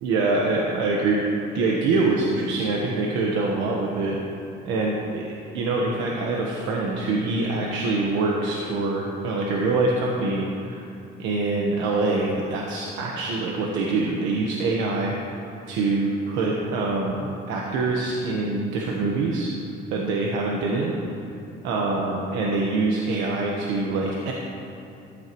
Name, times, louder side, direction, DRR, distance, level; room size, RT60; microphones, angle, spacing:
voice 1, 0.0-4.2 4.6-5.2 5.5-10.8 11.2-19.5 19.9-20.9 21.6-24.3, right 3 dB, 85° right, -2 dB, 1.3 m, -25 dB
14.0 x 11.5 x 3.1 m, 2.7 s
cardioid pair, 150°, 20 cm